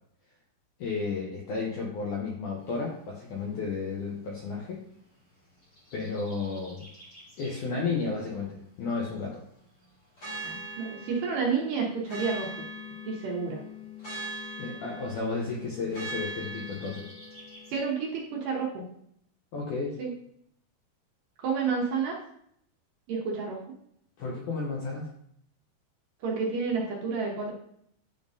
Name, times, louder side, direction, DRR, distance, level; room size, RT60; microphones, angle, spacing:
voice 1, 0.8-4.8 5.9-6.9 7.4-9.4 14.6-17.1 19.5-19.9 24.2-25.1, left 4 dB, 80° left, -2 dB, 1.8 m, -32 dB
sound 1, 5.6-7.6 10.2-17.8, equal, 60° left, 0.9 m, -41 dB
voice 2, 10.4-12.5 13.1-13.6 17.7-18.8 20.0-20.1 21.4-22.2 23.1-23.6 26.2-27.5, right 5 dB, 70° right, -3 dB, 2.2 m, -30 dB
10.0 x 3.6 x 2.7 m, 0.71 s
omnidirectional pair, 4.6 m